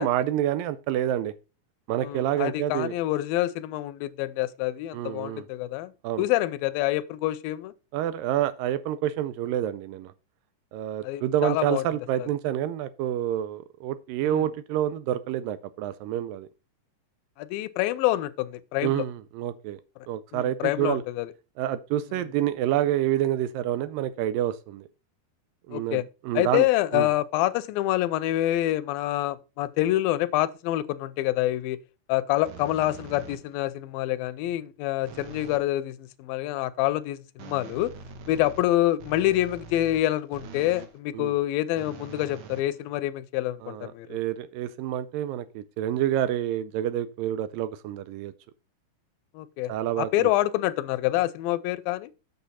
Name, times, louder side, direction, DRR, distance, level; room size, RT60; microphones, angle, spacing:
voice 1, 0.0-1.3 1.9-2.9 4.9-5.5 6.0-6.3 7.9-10.1 10.7-16.5 18.8-19.8 20.1-21.0 21.6-24.9 25.7-26.7 26.9-27.1 41.1-41.3 43.6-48.3 49.7-50.3, right 12 dB, 80° right, 2.2 m, -28 dB
voice 2, 2.0-5.9 6.2-7.7 11.0-11.8 12.2-12.3 14.2-14.5 17.4-19.0 20.3-21.3 25.7-26.0 26.3-31.8 32.1-37.9 38.3-44.2 49.3-49.7 50.0-52.1, left 15 dB, 80° left, 2.3 m, -27 dB
sound 1, 32.4-33.7 35.1-35.7 37.4-41.0 41.8-43.2, right 6 dB, 65° right, 2.2 m, -44 dB
8.2 x 6.8 x 4.2 m
omnidirectional pair, 4.2 m